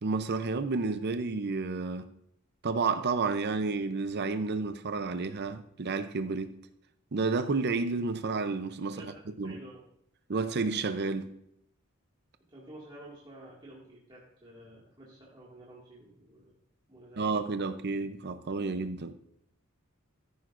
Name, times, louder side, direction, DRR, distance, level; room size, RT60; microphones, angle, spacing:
voice 1, 0.0-2.1 2.6-6.5 7.1-9.1 9.4-9.6 10.3-11.3 17.2-19.1, right 4 dB, 50° right, 0.6 m, -31 dB
voice 2, 8.9-9.8 12.5-16.5 16.9-17.5, right 1 dB, 25° right, 2.0 m, -51 dB
14.0 x 10.5 x 2.5 m
head